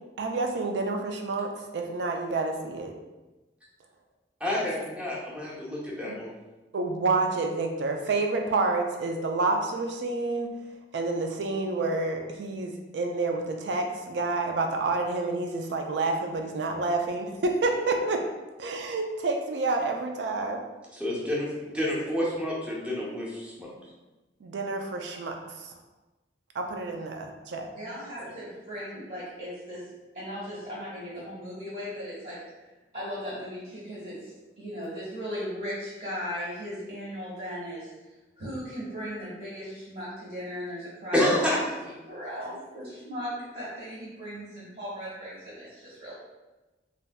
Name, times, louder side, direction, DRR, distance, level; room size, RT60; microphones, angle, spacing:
voice 1, 0.2-2.9 6.1-6.2 6.7-10.5 10.9-18.2 18.6-20.6 24.4-25.4 26.6-27.7, right 3 dB, 80° right, 3 dB, 0.4 m, -28 dB
voice 2, 4.4-6.3 20.9-21.5 21.7-23.7 28.2-28.3 41.1-41.6, left 1 dB, 5° right, -5 dB, 0.6 m, -28 dB
voice 3, 27.7-29.8 30.1-32.4 32.9-37.9 38.4-41.2 41.6-46.1, equal, 50° right, -9 dB, 1.2 m, -37 dB
3.3 x 2.6 x 2.2 m, 1.1 s
head